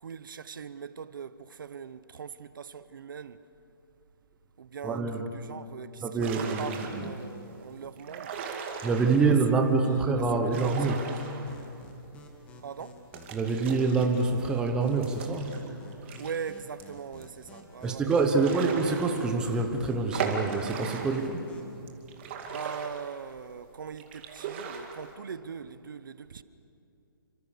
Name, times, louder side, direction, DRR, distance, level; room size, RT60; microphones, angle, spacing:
voice 1, 0.0-3.4 4.6-5.1 5.3-8.4 9.1-9.3 9.8-10.1 10.4-11.1 12.6-13.0 16.2-18.1 22.5-26.4, right 6 dB, 60° right, 1.0 m, -41 dB
voice 2, 4.8-5.3 6.0-7.1 8.8-11.1 13.3-15.5 17.8-21.4, right 4 dB, 5° right, 1.0 m, -26 dB
sound 1, 6.2-7.3 8.0-9.4 10.3-11.9 12.2-12.3 13.1-16.4 16.8-16.9 17.2-17.3 18.1-19.6 20.1-21.4 21.9-23.5 24.0-25.1, right 6 dB, 30° right, 2.4 m, -38 dB
sound 2, 11.1-21.8, left 2 dB, 10° left, 1.8 m, -51 dB
29.0 x 25.5 x 6.9 m
hypercardioid pair, 170°, 12 cm